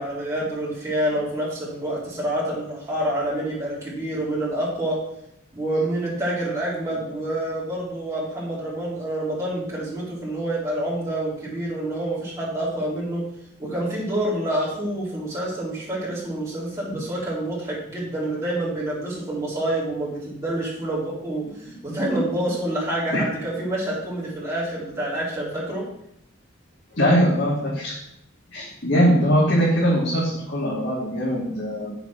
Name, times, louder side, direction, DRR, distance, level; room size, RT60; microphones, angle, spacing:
voice 1, 0.0-5.0 5.5-13.2 13.6-25.8, right 1 dB, 15° right, -7 dB, 4.0 m, -27 dB
voice 2, 26.9-27.9 28.5-31.9, equal, 60° left, -8 dB, 2.9 m, -21 dB
7.9 x 6.9 x 6.3 m, 0.79 s
head